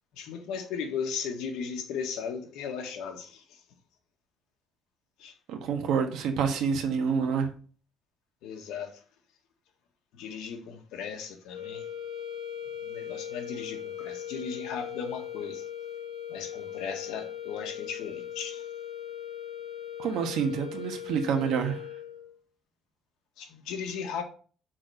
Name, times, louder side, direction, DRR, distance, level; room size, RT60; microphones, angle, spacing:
voice 1, 0.1-3.6 5.2-5.3 8.4-9.0 10.1-11.8 12.8-15.6 16.3-18.7 23.4-24.2, left 6 dB, 80° left, 1.5 m, -36 dB
voice 2, 5.5-7.5 20.0-21.9, right 6 dB, 70° right, 1.4 m, -28 dB
sound 1, 11.5-22.4, left 10 dB, 35° left, 2.0 m, -39 dB
6.2 x 4.4 x 6.4 m
cardioid pair, 170°, 0 cm